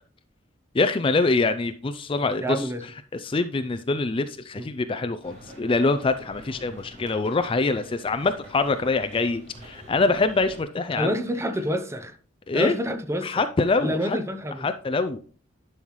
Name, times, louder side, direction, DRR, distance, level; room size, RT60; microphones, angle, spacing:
voice 1, 0.7-2.7 3.1-11.1 12.5-12.8 13.2-14.2 14.6-15.2, left 3 dB, 25° left, 0.4 m, -24 dB
voice 2, 2.4-2.8 4.6-4.7 11.0-12.1 12.5-13.4 13.8-14.7, equal, 15° right, 0.7 m, -27 dB
sound 1, 5.2-10.6, right 1 dB, 35° right, 3.2 m, -46 dB
11.0 x 5.6 x 3.1 m
head